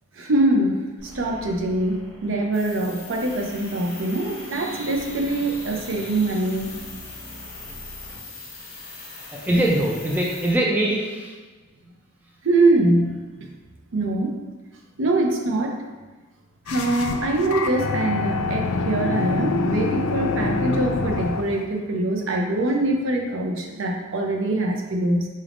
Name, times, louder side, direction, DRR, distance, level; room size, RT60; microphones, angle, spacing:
voice 1, 0.2-0.8 1.1-6.8 12.4-13.5 13.9-14.4 15.0-15.8 16.7-25.3, right 2 dB, 65° right, 2 dB, 0.5 m, -23 dB
sound 1, 1.0-8.2, equal, 80° right, 1.2 m, -42 dB
sound 2, 2.5-10.5, left 3 dB, 45° left, 1.1 m, -41 dB
voice 2, 9.3-11.4, right 1 dB, 10° right, -3 dB, 0.3 m, -22 dB
sound 3, 16.7-21.6, left 3 dB, 85° left, 0.4 m, -25 dB
4.0 x 3.4 x 2.5 m, 1.2 s
head